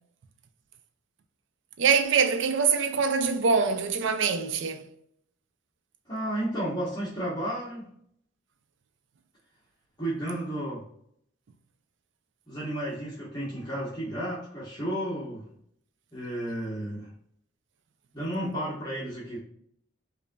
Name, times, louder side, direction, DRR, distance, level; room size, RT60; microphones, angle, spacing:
voice 1, 1.8-4.9, right 5 dB, 65° right, 0.4 m, -24 dB
voice 2, 6.1-7.9 10.0-10.8 12.5-15.4 16.1-17.1 18.1-19.4, right 1 dB, 20° left, 1.1 m, -32 dB
5.2 x 2.6 x 2.2 m
head